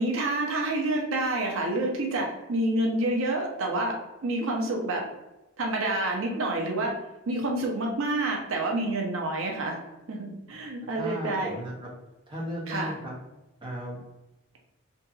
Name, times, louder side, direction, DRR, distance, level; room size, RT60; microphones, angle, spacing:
voice 1, 0.0-5.0 5.6-6.9 7.3-9.8 10.1-11.5 12.7-12.9, right 2 dB, 75° right, 0 dB, 0.5 m, -28 dB
voice 2, 10.9-11.9 12.3-13.1 13.6-14.0, equal, 25° right, -4 dB, 0.7 m, -35 dB
2.7 x 2.6 x 2.4 m, 1.0 s
head